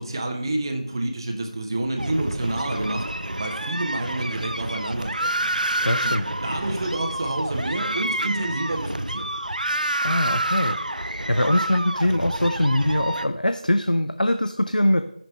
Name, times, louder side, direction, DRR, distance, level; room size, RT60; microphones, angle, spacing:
voice 1, 0.0-5.5 6.0-6.1 6.4-9.3, right 2 dB, 35° right, 3 dB, 1.3 m, -28 dB
sound 1, 2.0-13.3, right 1 dB, 85° right, 0.7 m, -28 dB
voice 2, 5.8-6.2 10.0-15.0, left 1 dB, 90° left, 8 dB, 0.7 m, -22 dB
14.0 x 6.0 x 3.3 m, 0.76 s
figure-of-eight pair, 165°, 4 cm